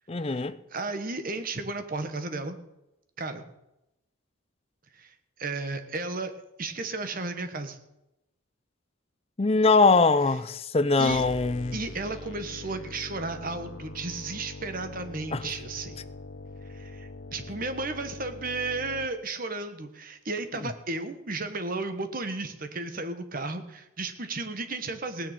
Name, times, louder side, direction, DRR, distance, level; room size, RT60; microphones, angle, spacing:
voice 1, 0.1-0.6 9.4-11.8 15.3-15.4, left 3 dB, 30° left, 0.5 m, -22 dB
voice 2, 0.7-2.6 3.2-3.4 4.9-5.1 5.4-6.3 6.6-7.8 11.0-11.2 11.7-16.0 16.7-25.3, right 3 dB, 40° right, 1.2 m, -34 dB
sound 1, 11.1-19.1, left 2 dB, 60° left, 0.8 m, -42 dB
17.0 x 6.4 x 9.0 m
head